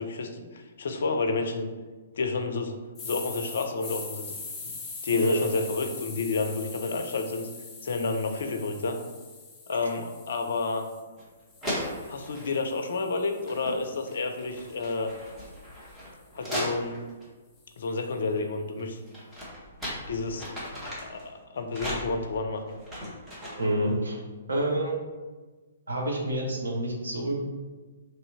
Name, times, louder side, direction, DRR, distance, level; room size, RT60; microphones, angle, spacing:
voice 1, 0.0-1.7 2.2-2.8 3.0-4.3 5.0-7.5 7.8-9.0 9.7-10.9 12.1-15.1 16.3-17.0 17.8-19.0 20.1-20.6 21.0-22.8, left 3 dB, 60° left, 5 dB, 0.4 m, -30 dB
sound 1, 2.9-11.0 11.5-15.7, left 4 dB, 20° left, 0.6 m, -43 dB
voice 2, 5.1-5.4 9.8-9.9 23.6-24.2 24.5-25.0 25.9-27.4, right 1 dB, 70° right, -1 dB, 0.9 m, -28 dB
sound 2, 11.2-11.3 11.6-12.6 13.3-13.8 14.1-17.3 18.8-21.2 21.7-23.8, equal, 10° right, 1.2 m, -37 dB
3.1 x 2.6 x 4.1 m, 1.3 s
figure-of-eight pair, 120°, 0 cm